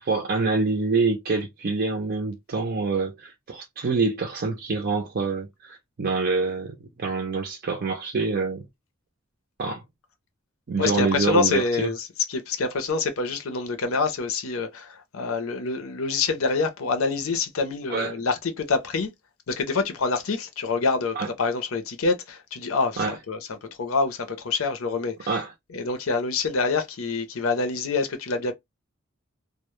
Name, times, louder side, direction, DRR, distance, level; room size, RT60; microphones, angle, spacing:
voice 1, 0.0-8.6 9.6-9.8 10.7-11.9 17.9-18.1 21.2-21.3 23.0-23.1 25.3-25.5, right 4 dB, 50° right, 0.5 m, -26 dB
voice 2, 10.8-19.1 19.5-25.4 25.7-28.5, left 4 dB, 85° left, 0.6 m, -26 dB
2.1 x 2.0 x 2.9 m
head